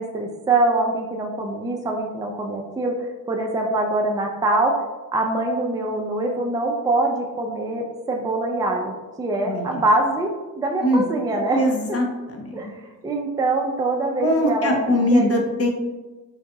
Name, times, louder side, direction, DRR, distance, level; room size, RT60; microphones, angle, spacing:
voice 1, 0.0-4.7 5.1-12.0 12.5-12.7 13.0-15.4, right 2 dB, 10° right, 0 dB, 0.4 m, -24 dB
voice 2, 9.4-9.8 10.8-11.0 11.5-12.7 14.2-15.7, left 1 dB, 45° left, 2 dB, 0.6 m, -21 dB
3.9 x 2.3 x 2.7 m, 1.2 s
cardioid pair, 85°, 32 cm